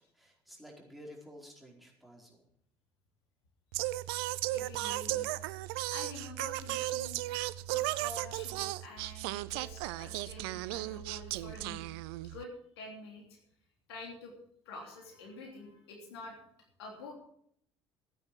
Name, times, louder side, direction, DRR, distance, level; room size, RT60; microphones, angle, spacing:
voice 1, 0.1-2.4, equal, ahead, -2 dB, 4.6 m, -52 dB
Singing, 3.7-12.4, right 17 dB, 70° right, 0.5 m, -36 dB
voice 2, 4.5-7.2 7.7-11.8 12.3-12.5 12.8-13.2 13.9-14.3 14.6-16.4 16.8-17.1, left 2 dB, 75° left, 1 dB, 3.2 m, -47 dB
14.5 x 9.5 x 6.1 m, 0.68 s
figure-of-eight pair, 55°, 13 cm